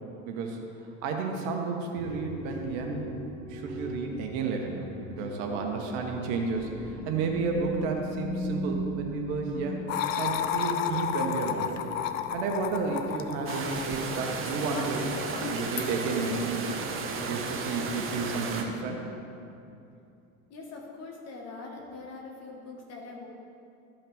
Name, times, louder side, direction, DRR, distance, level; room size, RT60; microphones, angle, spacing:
voice 1, 0.2-0.6 1.0-3.1 3.5-9.8 10.2-11.8 12.3-16.8 17.3-19.0, right 4 dB, 55° right, 3 dB, 1.2 m, -32 dB
sound 1, 2.0-9.5, equal, 10° left, 0.7 m, -38 dB
sound 2, 9.9-15.9, left 9 dB, 70° left, 0.6 m, -33 dB
sound 3, 13.5-18.6, right 4 dB, 30° right, 1.1 m, -34 dB
voice 2, 20.5-23.3, left 3 dB, 40° left, -1 dB, 1.7 m, -43 dB
13.0 x 5.5 x 3.6 m, 2.6 s
figure-of-eight pair, 70°, 40 cm